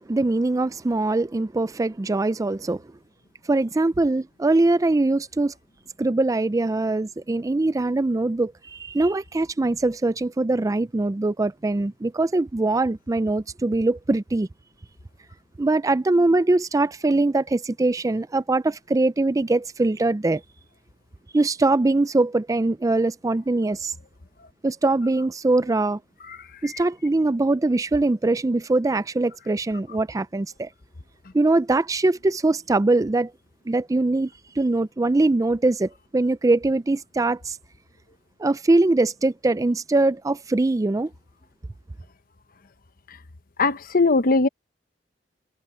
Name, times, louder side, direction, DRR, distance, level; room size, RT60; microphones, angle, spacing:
voice 1, 0.1-2.8 3.5-5.5 6.0-14.5 15.6-20.4 21.3-23.9 24.6-26.0 26.6-30.7 31.3-33.3 33.7-34.3 34.6-37.6 38.4-41.1, right 2 dB, 20° right, 0.4 m, -22 dB
voice 2, 43.6-44.5, left 3 dB, 50° left, 0.9 m, -19 dB
head